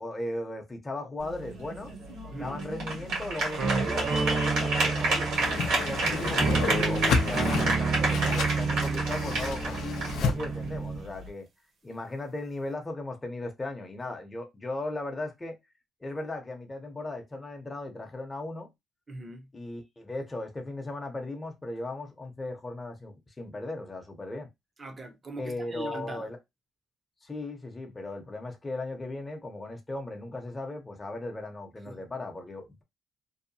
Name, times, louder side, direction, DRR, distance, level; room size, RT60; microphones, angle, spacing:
voice 1, 0.0-1.9 2.3-5.3 5.7-11.5 11.8-15.5 16.0-18.7 19.5-24.5 25.4-26.4 27.2-32.8, left 2 dB, 20° left, 0.7 m, -37 dB
sound 1, 1.2-11.3, right 3 dB, 90° right, 1.4 m, -31 dB
voice 2, 2.3-2.6 19.1-19.5 24.8-26.3 31.9-32.0, right 2 dB, 30° right, 0.6 m, -40 dB
sound 2, 3.6-11.0, right 4 dB, 60° right, 0.9 m, -30 dB
Whoosh swoosh swish, 5.3-10.3, left 5 dB, 80° left, 0.5 m, -31 dB
2.7 x 2.2 x 2.6 m
cardioid pair, 90°, 0 cm